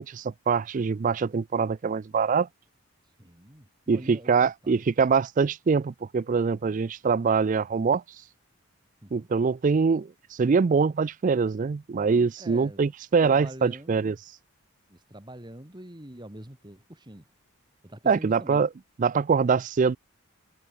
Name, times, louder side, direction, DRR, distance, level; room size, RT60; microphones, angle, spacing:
voice 1, 0.0-2.5 3.9-8.0 9.1-14.2 18.1-18.7 19.0-20.0, right 5 dB, 35° right, 0.3 m, -24 dB
voice 2, 3.2-4.9 9.0-9.3 12.4-12.8 13.2-14.0 14.9-17.3 17.8-18.7, right 1 dB, 20° right, 2.3 m, -45 dB
head